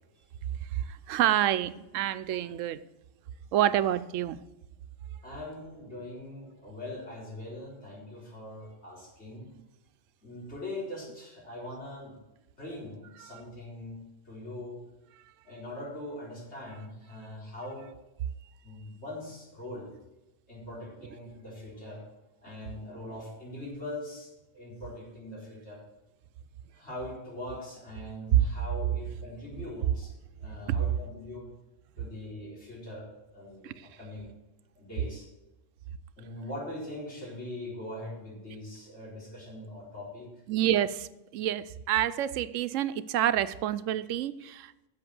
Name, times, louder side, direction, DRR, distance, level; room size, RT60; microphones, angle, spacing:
voice 1, 0.7-2.8 3.5-4.4 13.2-13.4 28.3-28.4 30.7-30.8 33.6-33.9 40.5-44.9, right 12 dB, 90° right, 14 dB, 0.9 m, -28 dB
voice 2, 5.2-9.5 10.2-12.2 12.6-14.8 15.4-17.9 18.6-19.9 20.5-22.0 22.4-25.8 26.7-30.1 30.4-31.5 32.0-34.3 34.8-35.3 36.2-40.3, left 1 dB, 60° left, -5 dB, 4.5 m, -41 dB
11.0 x 7.1 x 6.2 m, 0.96 s
omnidirectional pair, 1.3 m